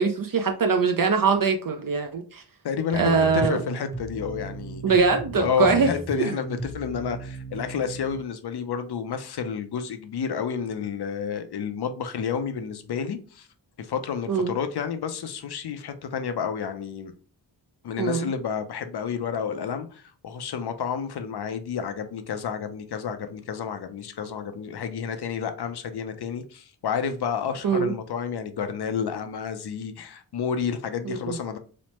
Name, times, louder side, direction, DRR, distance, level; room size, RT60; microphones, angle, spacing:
voice 1, 0.0-2.4 2.9-3.6 4.8-5.9 6.2-6.3 14.3-14.5 18.0-18.3 27.6-27.9 31.0-31.4, right 5 dB, 50° right, 0.5 m, -22 dB
voice 2, 2.6-4.8 5.3-13.5 13.8-17.1 17.8-31.6, left 7 dB, 60° left, 0.5 m, -30 dB
sound 1, 2.9-8.2, right 3 dB, 5° left, 0.5 m, -37 dB
3.1 x 2.1 x 2.9 m
cardioid pair, 55°, 45 cm